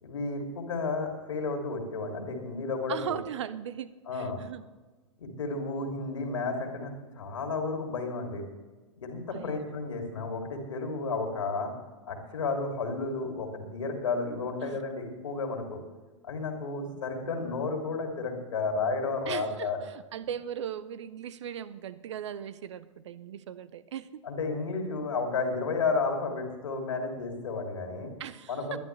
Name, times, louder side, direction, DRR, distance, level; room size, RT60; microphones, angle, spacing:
voice 1, 0.0-3.2 4.1-4.4 5.2-8.4 9.0-11.7 12.0-15.8 16.2-19.8 24.2-28.1 28.5-28.8, left 4 dB, 70° left, 3 dB, 3.0 m, -32 dB
voice 2, 2.9-4.7 9.3-9.8 14.6-14.8 16.8-17.0 19.3-24.2 28.2-28.8, right 9 dB, 60° right, 15 dB, 0.7 m, -38 dB
20.5 x 11.0 x 3.3 m, 1.2 s
figure-of-eight pair, 95°, 17 cm